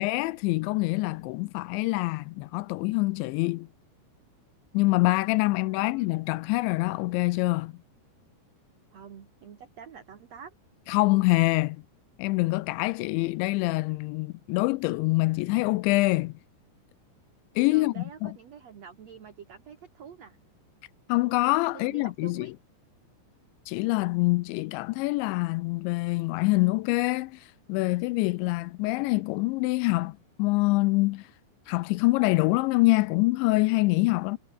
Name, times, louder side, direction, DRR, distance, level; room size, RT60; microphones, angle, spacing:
voice 1, 0.0-3.7 4.7-7.7 10.9-11.8 12.2-16.4 17.6-18.3 21.1-22.5 23.7-31.3 31.7-34.4, left 22 dB, 85° left, 2.7 m, -25 dB
voice 2, 5.6-6.1 8.9-10.6 17.7-20.4 21.7-22.5, right 7 dB, 50° right, 2.2 m, -47 dB
omnidirectional pair, 5.7 m